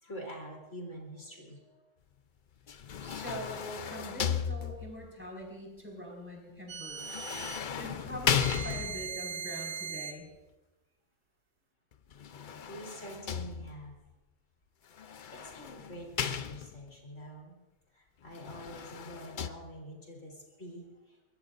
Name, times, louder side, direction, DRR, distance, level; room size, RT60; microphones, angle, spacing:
voice 1, 0.0-1.8 12.7-14.0 15.3-17.5 17.9-21.2, equal, 65° left, -1 dB, 3.9 m, -46 dB
sound 1, 2.7-5.1 7.0-9.2 12.1-14.0 15.0-17.0 18.3-19.5, left 8 dB, 50° left, 0.6 m, -35 dB
voice 2, 3.0-7.3 7.8-10.3, equal, 10° right, -2 dB, 5.2 m, -43 dB
sound 2, 6.7-7.7 8.4-10.2, right 6 dB, 80° right, 1.2 m, -40 dB
24.0 x 21.5 x 2.6 m, 1.0 s
omnidirectional pair, 1.4 m